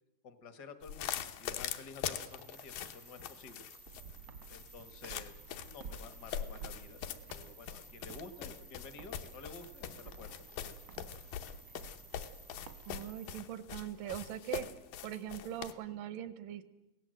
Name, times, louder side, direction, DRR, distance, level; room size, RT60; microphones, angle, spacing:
voice 1, 0.2-3.7 4.5-10.7 11.1-11.3, left 4 dB, 70° left, 10 dB, 0.9 m, -52 dB
sound 1, 0.8-15.7, left 9 dB, 85° left, 2.8 m, -43 dB
sound 2, 2.3-13.4, right 3 dB, 35° left, 0.4 m, -58 dB
Walk footsteps, 3.9-12.9, right 6 dB, 70° right, 1.1 m, -53 dB
voice 2, 12.9-14.7 15.0-16.6, right 11 dB, 90° right, 14 dB, 2.7 m, -41 dB
24.0 x 17.5 x 7.6 m, 0.97 s
omnidirectional pair, 3.8 m